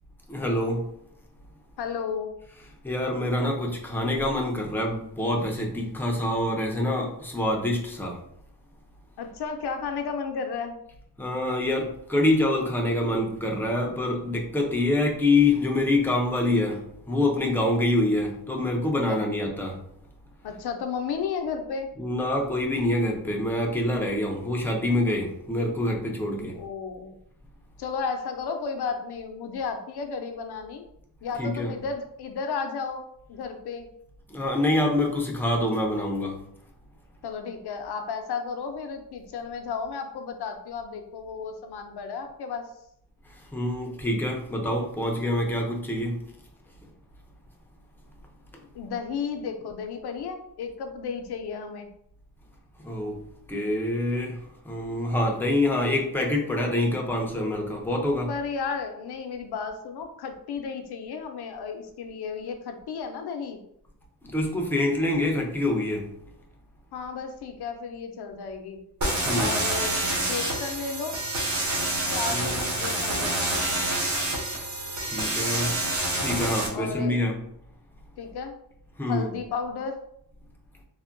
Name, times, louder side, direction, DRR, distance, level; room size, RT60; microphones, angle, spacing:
voice 1, 0.3-1.0 2.8-8.2 11.2-19.8 22.0-26.6 31.4-31.8 34.3-36.5 43.3-46.3 48.5-48.6 52.8-58.4 64.2-66.1 69.2-69.6 72.3-72.7 75.0-75.8 76.2-77.5 79.0-79.3, left 1 dB, 5° left, 0 dB, 0.5 m, -26 dB
voice 2, 1.8-2.4 9.2-10.8 19.1-19.2 20.4-21.9 26.5-27.2 27.8-30.8 31.2-33.0 33.3-33.9 37.2-42.7 48.7-51.9 58.3-63.6 66.9-68.8 69.4-71.2 72.1-73.8 76.7-77.2 78.2-78.5 79.1-80.0, left 5 dB, 70° left, 6 dB, 0.6 m, -33 dB
sound 1, 69.0-76.7, right 1 dB, 45° right, 0.8 m, -27 dB
3.4 x 2.2 x 2.5 m, 0.74 s
wide cardioid pair, 125°, 40 cm